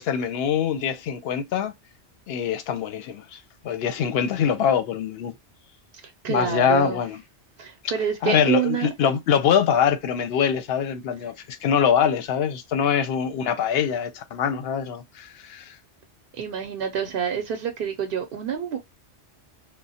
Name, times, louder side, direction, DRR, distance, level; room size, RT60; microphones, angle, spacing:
voice 1, 0.0-1.7 2.3-5.3 6.3-7.2 7.8-7.9 8.2-15.8, left 8 dB, 65° left, 0.7 m, -24 dB
voice 2, 6.0-7.0 7.6-8.9 16.3-18.8, right 8 dB, 60° right, 0.7 m, -27 dB
3.1 x 2.1 x 2.7 m
omnidirectional pair, 1.2 m